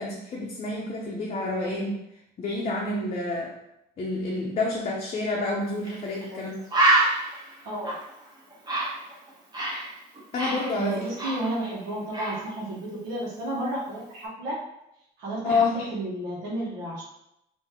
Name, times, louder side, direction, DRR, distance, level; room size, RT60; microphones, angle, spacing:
voice 1, 0.0-2.0 2.4-3.5 4.0-6.6 10.3-11.1 15.4-15.9, left 3 dB, 40° left, -2 dB, 0.6 m, -28 dB
Bird, 5.8-6.0 6.3-6.4 6.7-9.9 10.2-11.8 12.1-12.4, right 2 dB, 25° right, 1.0 m, -26 dB
voice 2, 7.6-7.9 10.7-14.6 15.2-17.0, right 1 dB, 90° right, -5 dB, 1.0 m, -32 dB
3.6 x 2.6 x 2.9 m, 0.82 s
cardioid pair, 110°, 17 cm